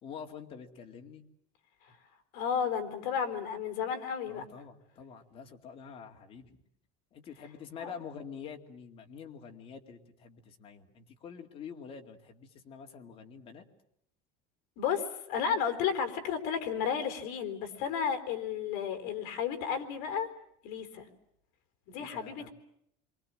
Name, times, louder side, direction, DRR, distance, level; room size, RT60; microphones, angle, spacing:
voice 1, 0.0-1.2 4.3-6.6 7.1-13.6 21.9-22.5, left 6 dB, 30° left, 4 dB, 2.3 m, -47 dB
voice 2, 2.3-4.4 7.8-7.9 14.8-20.3 20.6-21.1 21.9-22.5, left 7 dB, 60° left, 8 dB, 3.9 m, -33 dB
28.5 x 23.5 x 7.6 m, 0.73 s
cardioid pair, 165°, 17 cm